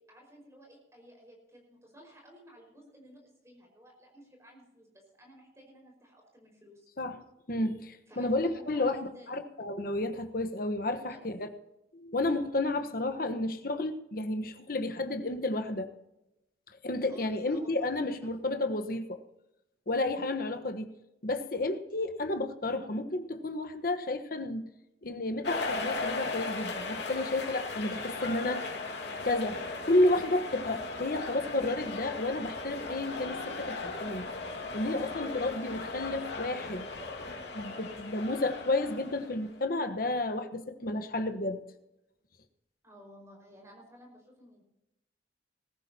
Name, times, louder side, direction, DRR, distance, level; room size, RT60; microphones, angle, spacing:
voice 1, 0.0-6.9 8.1-9.4 10.8-11.2 17.0-17.9 18.2-18.3 42.8-44.6, equal, 15° right, 1 dB, 5.2 m, -55 dB
voice 2, 7.5-11.5 11.9-15.9 16.8-19.2 19.9-20.9 21.2-24.7 25.0-28.6 29.2-34.3 34.7-36.9 37.5-41.6, left 2 dB, 55° left, 8 dB, 1.2 m, -31 dB
sound 1, 25.4-39.6, left 3 dB, 75° left, 3.0 m, -37 dB
20.0 x 14.0 x 2.9 m, 0.90 s
head